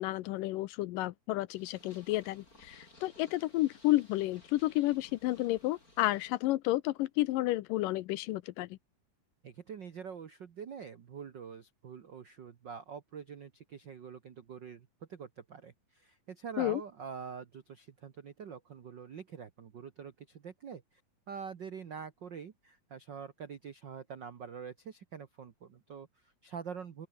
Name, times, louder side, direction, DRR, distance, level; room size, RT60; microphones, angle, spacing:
voice 1, 0.0-8.8 16.6-16.8, left 17 dB, 75° left, 2.2 m, -31 dB
Purr, 1.5-6.4, left 2 dB, 20° left, 7.1 m, -59 dB
voice 2, 9.4-21.0 21.3-27.1, right 6 dB, 85° right, 1.0 m, -45 dB
open air
omnidirectional pair, 4.1 m